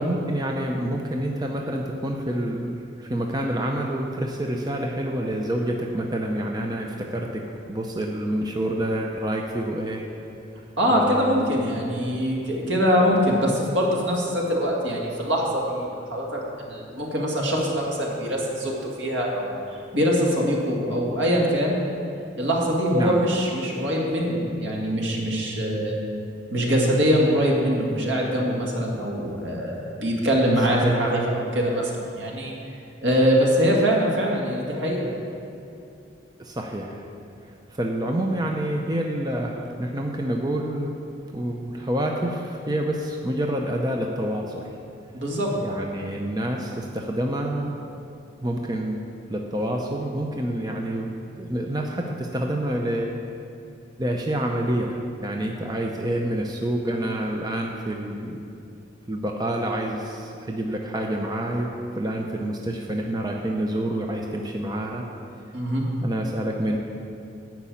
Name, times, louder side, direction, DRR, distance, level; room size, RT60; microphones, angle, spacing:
voice 1, 0.0-7.4 7.7-10.0 10.9-11.5 11.7-11.9 22.9-23.2 30.7-30.9 36.4-37.1 37.7-40.9 41.3-44.7 45.6-47.7 48.4-49.0 49.3-53.1 54.0-58.4 59.1-65.1 66.0-66.8, right 1 dB, 20° right, 1 dB, 0.6 m, -28 dB
voice 2, 10.8-19.6 19.9-21.8 22.4-26.0 26.5-32.5 33.0-35.1 45.1-45.6 65.5-65.9, equal, 75° right, -2 dB, 2.1 m, -23 dB
9.9 x 6.0 x 8.6 m, 2.6 s
head